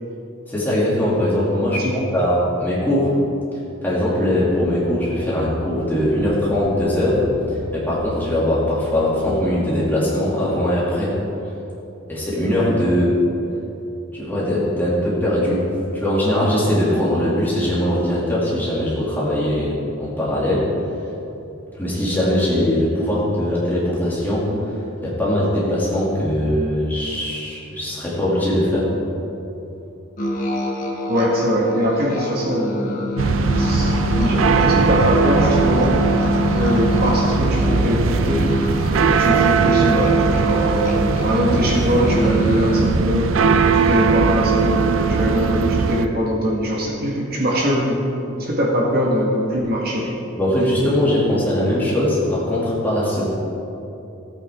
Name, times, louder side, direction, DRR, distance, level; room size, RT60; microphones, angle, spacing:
voice 1, 0.5-3.1 3.8-7.2 7.7-11.2 12.1-13.1 14.1-15.6 15.9-20.7 21.8-24.8 25.0-28.9 50.4-53.3, left 1 dB, 10° left, -8 dB, 2.6 m, -21 dB
voice 2, 1.6-2.0 31.1-33.0 33.5-36.0 36.5-38.5 39.1-40.9 41.2-43.3 43.9-48.0 48.4-50.1, equal, 45° right, -3 dB, 1.7 m, -22 dB
sound 1, 4.5-9.5, left 1 dB, 60° left, 1.0 m, -34 dB
sound 2, 30.2-42.8, left 1 dB, 35° left, 1.5 m, -25 dB
sound 3, 33.2-46.1, right 5 dB, 70° right, 0.5 m, -19 dB
16.0 x 8.7 x 3.7 m, 2.9 s
head